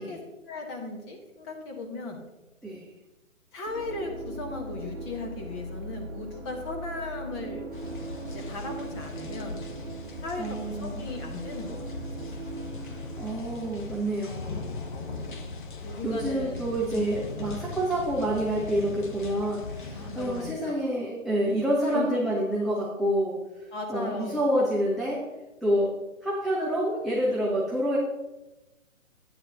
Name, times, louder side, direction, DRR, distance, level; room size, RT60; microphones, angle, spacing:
voice 1, 0.0-2.2 3.5-7.7 8.3-9.7 10.2-12.5 15.8-17.1 19.9-20.8 21.9-22.2 23.7-24.4, left 3 dB, 20° left, 2 dB, 1.2 m, -37 dB
sound 1, 3.7-14.4, right 2 dB, 50° right, 0.9 m, -39 dB
sound 2, 7.7-20.5, left 3 dB, 40° left, 0.9 m, -39 dB
voice 2, 10.4-11.1 12.7-14.7 16.0-25.3 25.6-25.9 26.2-28.0, right 1 dB, ahead, -6 dB, 0.3 m, -28 dB
10.5 x 9.0 x 2.8 m, 1.0 s
figure-of-eight pair, 135°, 40 cm